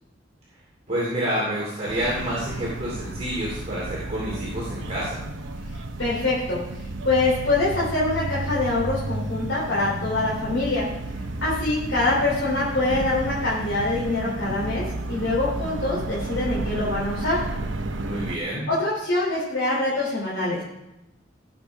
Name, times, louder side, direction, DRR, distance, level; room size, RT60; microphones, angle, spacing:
voice 1, 0.9-5.2 18.0-18.7, right 1 dB, 35° right, -6 dB, 2.6 m, -28 dB
sound 1, 1.9-18.4, right 2 dB, 85° right, 0.8 m, -32 dB
voice 2, 6.0-10.9 11.4-17.4 18.7-20.6, left 2 dB, 85° left, -7 dB, 3.1 m, -24 dB
17.0 x 6.8 x 3.5 m, 0.94 s
head